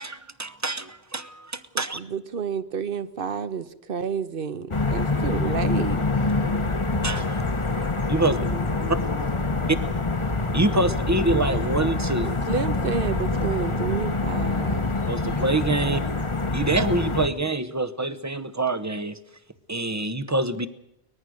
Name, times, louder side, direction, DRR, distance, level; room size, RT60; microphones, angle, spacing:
voice 1, 0.0-2.0 7.0-7.4 8.1-8.5 10.5-12.4 15.1-16.0 16.5-19.2 19.7-20.7, right 2 dB, 15° right, 13 dB, 0.8 m, -26 dB
voice 2, 1.7-6.0 12.5-14.8, right 6 dB, 60° right, 13 dB, 1.1 m, -30 dB
sound 1, 4.7-17.3, left 3 dB, 30° left, 1.1 m, -25 dB
voice 3, 6.2-6.7 8.2-9.7 15.8-16.4, left 1 dB, 85° left, 3 dB, 5.9 m, -40 dB
23.5 x 20.0 x 6.4 m, 0.81 s
omnidirectional pair, 1.1 m